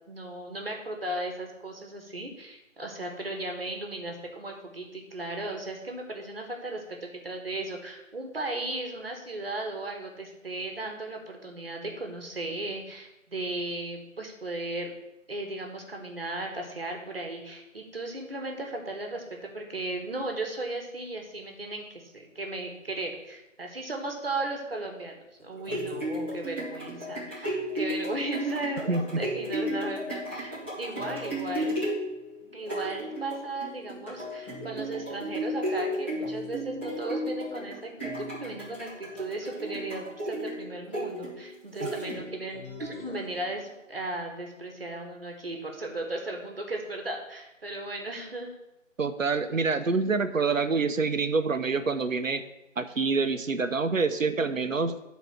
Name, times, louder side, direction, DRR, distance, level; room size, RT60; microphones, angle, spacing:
voice 1, 0.1-14.9 15.3-31.8 32.5-48.5, right 2 dB, 50° right, 2 dB, 1.5 m, -36 dB
sound 1, 25.4-42.5 43.0-43.1, equal, 10° left, 1.1 m, -34 dB
sound 2, 42.5-44.1, left 3 dB, 55° left, 2.6 m, -46 dB
voice 2, 49.0-52.4 52.8-55.0, right 4 dB, 80° right, 10 dB, 0.8 m, -26 dB
9.5 x 4.1 x 5.8 m, 0.93 s
figure-of-eight pair, 160°, 39 cm